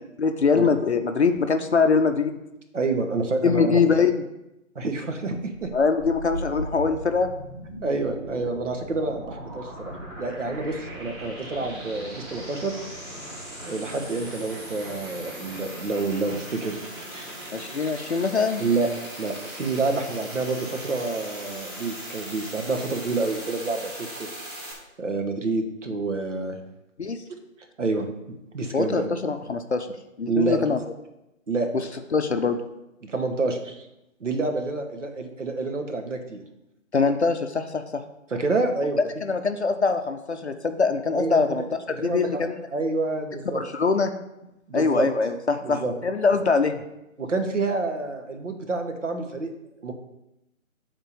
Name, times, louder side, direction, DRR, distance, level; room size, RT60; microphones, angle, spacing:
voice 1, 0.2-2.4 3.4-4.2 5.7-7.3 17.5-18.6 27.0-27.2 28.7-29.9 30.2-30.8 32.1-32.6 36.9-38.0 39.2-42.5 43.5-44.1 44.7-46.8, left 5 dB, 55° left, 7 dB, 0.6 m, -23 dB
voice 2, 2.7-3.8 4.7-5.7 7.8-12.7 13.7-16.8 17.1-17.3 18.6-18.9 19.2-24.3 25.0-26.6 27.8-28.1 28.5-29.0 30.3-30.6 31.5-31.7 33.0-33.9 34.2-36.4 38.3-39.0 41.1-41.4 42.0-42.4 42.7-43.6 44.7-45.1 45.6-45.9 47.2-49.5 49.8-49.9, right 3 dB, 65° right, 5 dB, 1.3 m, -28 dB
sound 1, 5.6-24.7, right 1 dB, 20° right, 1.6 m, -38 dB
7.9 x 3.8 x 6.7 m, 0.91 s
figure-of-eight pair, 165°, 41 cm